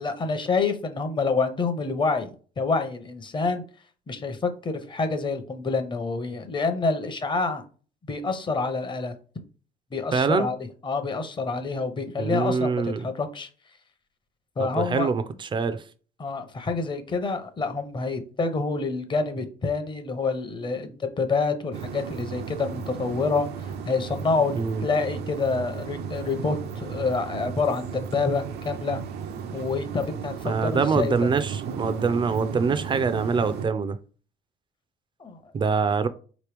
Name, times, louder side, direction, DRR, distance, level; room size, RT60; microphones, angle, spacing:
voice 1, 0.0-3.7 4.1-7.6 8.1-9.2 9.9-10.6 10.8-13.5 14.6-15.1 16.2-24.5 24.8-29.0 29.5-31.3 35.2-35.4, left 4 dB, 30° left, 0.8 m, -27 dB
voice 2, 10.1-10.5 12.2-13.1 14.6-15.8 24.5-24.8 30.4-34.0 35.5-36.1, right 5 dB, 30° right, 0.4 m, -24 dB
sound 1, 21.7-33.7, right 7 dB, 75° right, 0.6 m, -35 dB
4.3 x 3.0 x 3.3 m
cardioid pair, 110°, 17 cm